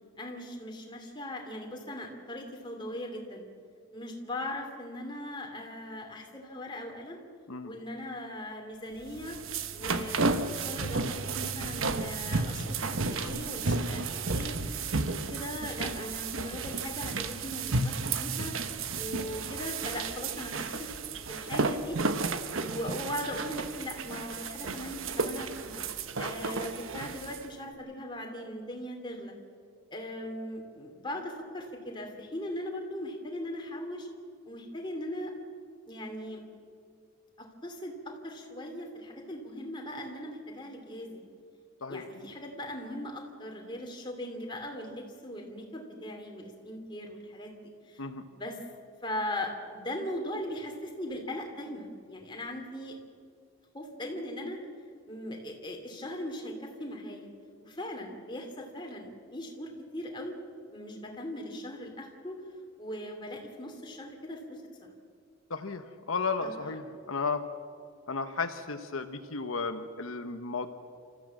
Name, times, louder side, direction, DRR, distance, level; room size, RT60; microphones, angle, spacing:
voice 1, 0.2-3.5 3.9-7.2 7.6-9.4 9.7-14.6 15.0-18.5 18.9-20.9 21.3-22.0 22.5-25.8 26.2-29.3 29.9-34.1 34.5-35.3 35.9-36.4 37.4-41.2 41.9-47.5 47.8-48.0 48.4-48.6 49.0-52.9 53.7-54.6 55.1-57.3 57.6-60.3 60.7-62.4 62.8-64.9 66.4-66.6, left 1 dB, 20° left, 2 dB, 2.8 m, -39 dB
sound 1, 9.0-27.5, right 3 dB, 70° right, 1.1 m, -33 dB
voice 2, 65.5-67.4 68.1-70.7, left 4 dB, 75° left, 7 dB, 1.0 m, -34 dB
28.5 x 14.5 x 7.6 m, 2.3 s
head